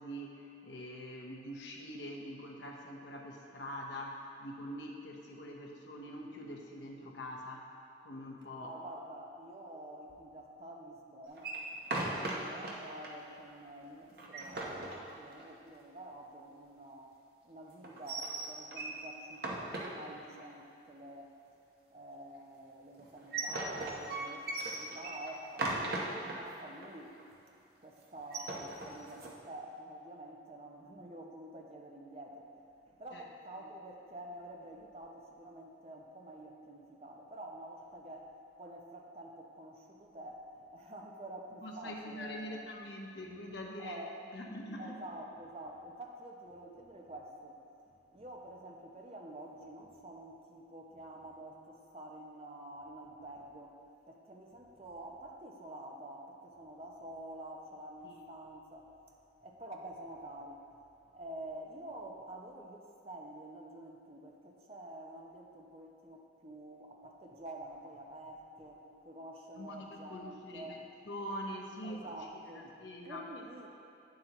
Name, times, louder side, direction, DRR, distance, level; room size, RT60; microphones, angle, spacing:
voice 1, 0.0-7.7 8.0-8.8 33.1-33.3 41.6-44.0 44.3-45.0 58.0-58.2 69.5-70.8 71.0-73.3, equal, 80° left, 0 dB, 1.0 m, -44 dB
voice 2, 8.6-11.6 12.1-17.1 17.4-21.4 21.9-27.2 27.8-42.6 43.8-44.2 44.8-47.6 47.8-53.8 54.1-58.9 59.4-60.6 61.1-70.8 71.8-72.7 73.0-73.7, right 1 dB, 35° right, 0 dB, 0.7 m, -48 dB
sound 1, 11.4-12.7 13.0-13.1 13.5-13.6 14.1-15.6 17.8-19.0 19.3-20.4 23.0-26.4 26.8-26.9 27.2-27.6 28.2-29.3, right 2 dB, 55° right, 0.9 m, -38 dB
9.2 x 7.6 x 3.0 m, 2.5 s
head